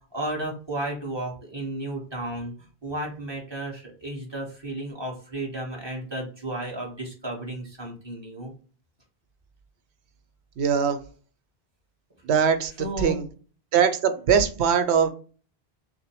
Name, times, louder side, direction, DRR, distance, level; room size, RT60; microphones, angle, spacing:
voice 1, 0.1-2.5 2.8-8.5 12.8-13.2, right 1 dB, 25° right, -2 dB, 1.4 m, -33 dB
voice 2, 10.6-11.0 12.2-12.7 13.0-13.2 13.7-15.1, right 7 dB, 85° right, 9 dB, 0.9 m, -21 dB
6.3 x 2.2 x 3.0 m, 0.40 s
omnidirectional pair, 1.1 m